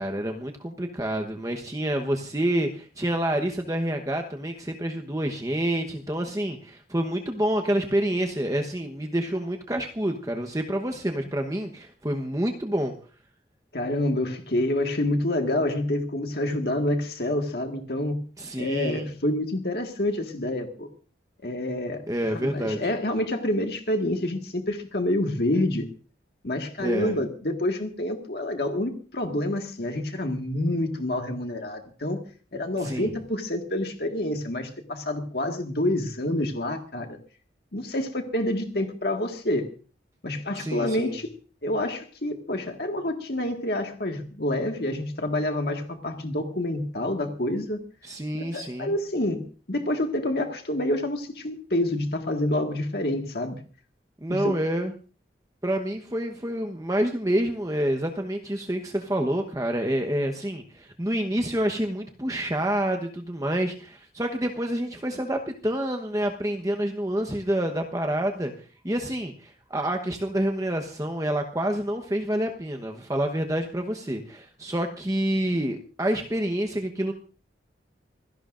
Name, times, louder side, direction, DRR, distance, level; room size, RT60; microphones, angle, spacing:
voice 1, 0.0-12.9 18.4-19.1 22.1-22.9 26.8-27.1 32.8-33.1 40.6-41.2 48.0-48.9 54.2-54.9 55.6-68.5 68.8-77.1, right 1 dB, 20° right, 4 dB, 1.0 m, -28 dB
voice 2, 13.7-18.2 18.6-20.9 21.4-22.1 22.3-25.9 26.4-32.2 32.5-37.2 37.7-39.7 40.2-41.3 41.6-47.8 48.3-53.6 54.3-54.6, left 1 dB, 55° left, 3 dB, 1.7 m, -28 dB
25.5 x 17.0 x 2.5 m, 0.38 s
head